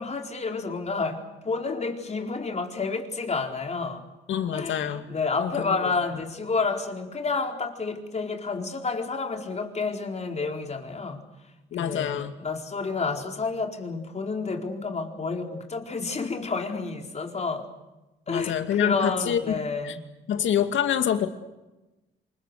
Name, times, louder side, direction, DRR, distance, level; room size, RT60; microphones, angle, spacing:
voice 1, 0.0-4.0 4.5-11.2 11.8-17.7 18.3-20.0, left 4 dB, 35° left, 3 dB, 4.4 m, -30 dB
voice 2, 4.3-5.1 5.4-5.9 11.7-12.3 18.3-20.0 20.3-21.3, left 9 dB, 75° left, 7 dB, 2.4 m, -26 dB
27.5 x 24.5 x 6.8 m, 1.0 s
cardioid pair, 90°, 20 cm